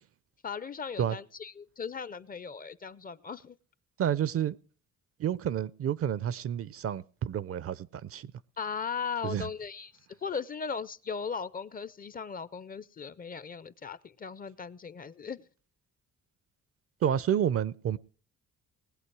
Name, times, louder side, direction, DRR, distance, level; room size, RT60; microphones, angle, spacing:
voice 1, 0.4-3.6 8.6-9.9 10.2-15.4, left 6 dB, 30° left, 0.5 m, -37 dB
voice 2, 4.0-4.6 5.2-8.3 9.2-9.5 17.0-18.0, right 9 dB, 50° right, 0.5 m, -30 dB
19.5 x 8.2 x 4.6 m
cardioid pair, 90°, 30 cm